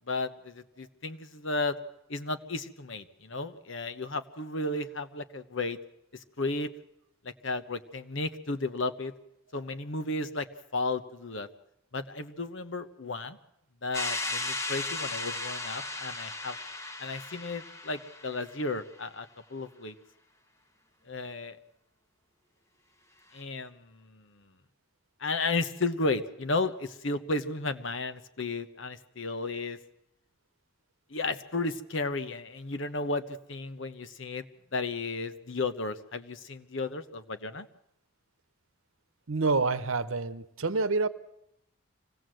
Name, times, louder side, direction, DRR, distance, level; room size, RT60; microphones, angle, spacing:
voice 1, 0.1-1.8 2.1-5.8 6.1-6.7 7.2-9.1 9.5-10.5 10.7-11.5 11.9-13.4 13.8-16.6 17.0-19.9 21.1-21.6 23.3-24.4 25.2-29.8 31.1-34.5 34.7-37.7, left 3 dB, 65° left, 1.1 m, -33 dB
sound 1, 13.9-18.7, left 2 dB, 15° left, 1.0 m, -36 dB
voice 2, 39.3-41.1, right 3 dB, 75° right, 1.0 m, -27 dB
25.0 x 17.5 x 7.8 m
head